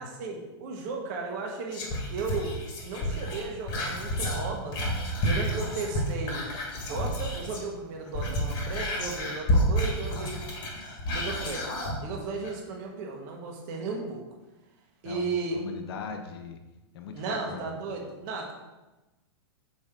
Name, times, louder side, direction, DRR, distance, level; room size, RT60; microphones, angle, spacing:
voice 1, 0.0-2.5 2.8-4.8 5.2-6.5 6.7-10.4 11.1-11.7 12.0-14.2 15.0-15.6 17.1-18.5, right 4 dB, 40° right, 0 dB, 1.3 m, -35 dB
Whispering, 1.7-7.7 8.0-12.0 12.4-12.5, equal, 30° left, 1.5 m, -30 dB
voice 2, 15.0-16.6 16.9-17.7, left 5 dB, 65° left, 5 dB, 0.8 m, -39 dB
6.3 x 4.8 x 3.7 m, 1.1 s
supercardioid pair, 160°, 14 cm